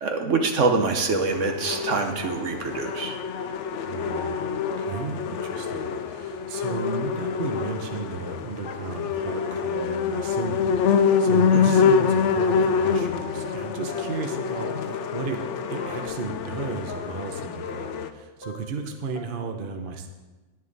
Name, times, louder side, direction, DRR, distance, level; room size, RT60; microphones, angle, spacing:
voice 1, 0.0-3.1 11.5-11.7, right 4 dB, 65° right, 4 dB, 1.3 m, -25 dB
sound 1, 1.3-18.1, left 6 dB, 65° left, 0.9 m, -26 dB
sound 2, 2.2-2.7 3.0-3.8 4.1-4.5 4.9-5.4 5.7-6.2 6.8-7.2 7.5-7.6 7.9-8.0 8.3-8.4 8.7-8.8 9.0-9.1 9.4-10.6 10.9-11.8 12.0-13.6 13.9-14.4 14.7-15.5 15.8-16.3 16.5-17.3 17.6-18.2 18.4-18.9 19.2-19.3, left 2 dB, 45° left, 1.3 m, -42 dB
voice 2, 3.8-4.5 4.8-20.1, right 4 dB, 45° right, 5 dB, 1.0 m, -34 dB
10.5 x 10.5 x 4.0 m, 1.2 s
omnidirectional pair, 1.4 m